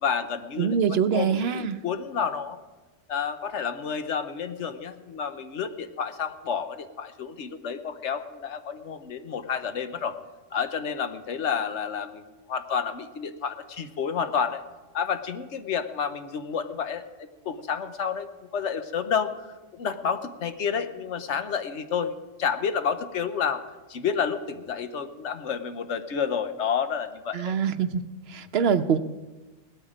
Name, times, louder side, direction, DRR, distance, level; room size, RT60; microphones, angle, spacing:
voice 1, 0.0-2.6 3.1-10.2 10.5-14.6 14.9-27.6, left 7 dB, 75° left, 9 dB, 1.2 m, -30 dB
voice 2, 0.6-1.8 27.3-28.0 28.3-29.0, right 7 dB, 65° right, 11 dB, 0.9 m, -24 dB
17.5 x 12.5 x 5.0 m, 1.2 s
omnidirectional pair, 1.2 m